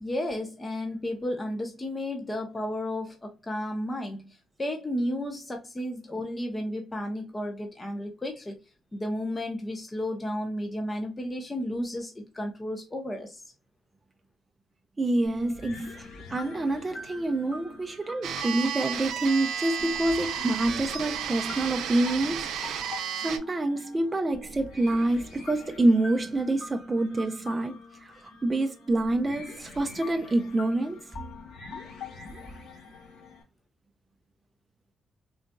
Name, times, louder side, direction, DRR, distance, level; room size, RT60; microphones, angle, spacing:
voice 1, 0.0-8.6 8.9-13.4, left 1 dB, 20° left, 0.7 m, -33 dB
voice 2, 15.0-15.9 16.3-22.8 23.2-31.1, right 2 dB, 25° right, 0.4 m, -27 dB
sound 1, 15.2-33.4, left 3 dB, 75° left, 1.5 m, -45 dB
sound 2, 18.2-23.4, right 8 dB, 85° right, 0.6 m, -32 dB
3.8 x 2.5 x 2.2 m
cardioid pair, 90°, 0 cm